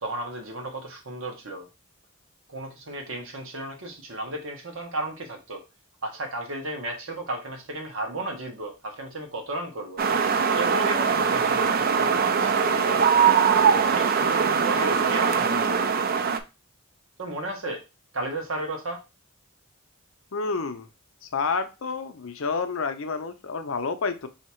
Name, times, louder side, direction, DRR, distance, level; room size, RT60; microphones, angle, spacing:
voice 1, 0.0-1.7 2.5-5.6 6.0-10.0 10.5-13.0 13.9-16.0 17.2-17.8 18.1-19.0, right 2 dB, 65° right, 3 dB, 1.1 m, -34 dB
sound 1, 10.0-16.4, right 6 dB, 45° right, 0.4 m, -22 dB
voice 2, 14.7-15.1 20.3-20.9 21.2-24.3, left 4 dB, 65° left, 9 dB, 0.6 m, -29 dB
3.5 x 2.8 x 4.3 m, 0.28 s
head